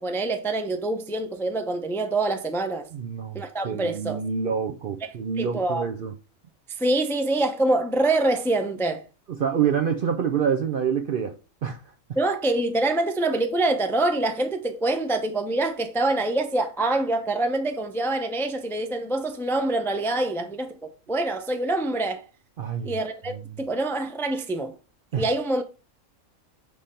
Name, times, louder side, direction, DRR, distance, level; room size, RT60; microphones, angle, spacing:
voice 1, 0.0-2.9 3.3-4.2 5.0-5.1 5.4-5.9 6.8-9.0 12.2-22.2 22.8-24.7 25.1-25.7, right 2 dB, 5° left, 0.4 m, -25 dB
voice 2, 2.9-6.1 9.3-11.4 11.6-11.8 22.6-22.9 23.3-23.6 25.1-25.2, right 7 dB, 60° right, 0.6 m, -27 dB
5.7 x 3.4 x 5.1 m
omnidirectional pair, 1.4 m